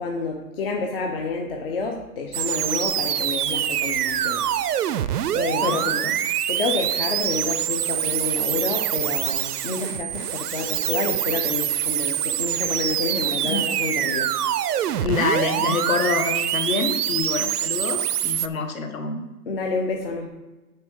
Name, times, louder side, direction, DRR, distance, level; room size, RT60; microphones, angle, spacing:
voice 1, 0.0-4.5 4.8-6.1 6.5-14.4 19.5-20.3, left 4 dB, 35° left, 1 dB, 0.8 m, -29 dB
sound 1, 2.3-18.5, right 11 dB, 70° right, 0.6 m, -25 dB
voice 2, 5.6-6.1 13.4-13.7 15.0-19.2, left 4 dB, 55° left, 5 dB, 1.4 m, -26 dB
9.8 x 3.7 x 6.4 m, 1.1 s
hypercardioid pair, 165°, 49 cm